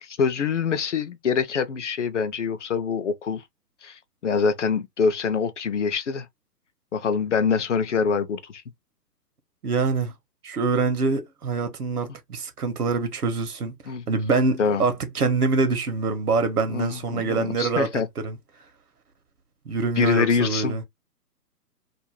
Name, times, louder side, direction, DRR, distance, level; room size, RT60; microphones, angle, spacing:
voice 1, 0.0-3.4 3.8-6.3 6.9-8.6 13.9-14.1 14.6-14.8 16.7-18.1 20.0-20.8, left 5 dB, 50° left, 0.5 m, -25 dB
voice 2, 9.6-10.1 10.4-13.7 14.1-18.4 19.7-20.8, right 4 dB, 65° right, 0.8 m, -25 dB
2.5 x 2.1 x 3.0 m
figure-of-eight pair, 130°, 49 cm